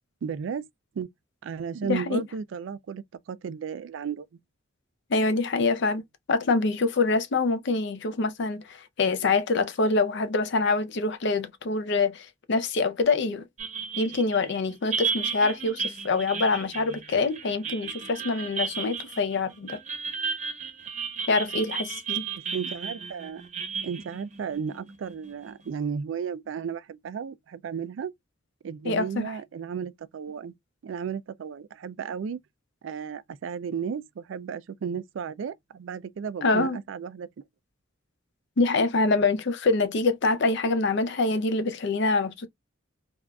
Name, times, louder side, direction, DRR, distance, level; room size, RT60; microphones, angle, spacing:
voice 1, 0.2-0.6 1.0-1.1 1.4-4.3 22.5-23.4 23.8-28.1 28.6-30.5 30.8-32.4 32.8-37.3, right 7 dB, 65° right, 0.3 m, -34 dB
voice 2, 1.9-2.2 5.1-6.0 6.3-13.4 14.0-19.8 21.3-22.2 28.8-29.3 36.4-36.8 38.6-42.5, left 3 dB, 60° left, 0.5 m, -25 dB
sound 1, 13.6-25.3, right 6 dB, 35° right, 0.8 m, -34 dB
3.6 x 2.4 x 2.2 m
head